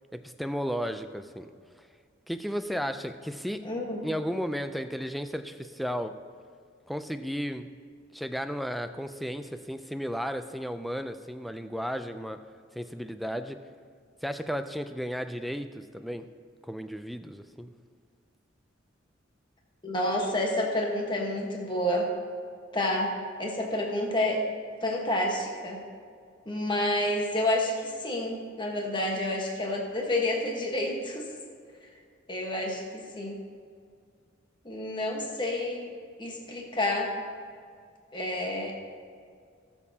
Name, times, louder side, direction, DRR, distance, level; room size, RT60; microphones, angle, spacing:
voice 1, 0.1-1.5 2.3-3.6 4.0-6.1 6.9-7.7 8.1-12.4 12.7-13.6 14.2-16.2 16.7-17.7, equal, ahead, 8 dB, 0.4 m, -34 dB
voice 2, 3.6-4.0 19.8-22.1 22.7-24.4 24.8-25.8 26.5-31.3 32.3-32.8 33.2-33.4 34.6-35.9 36.2-37.1 38.1-38.7, left 1 dB, 25° left, 0 dB, 1.3 m, -29 dB
18.5 x 7.3 x 2.8 m, 2.1 s
head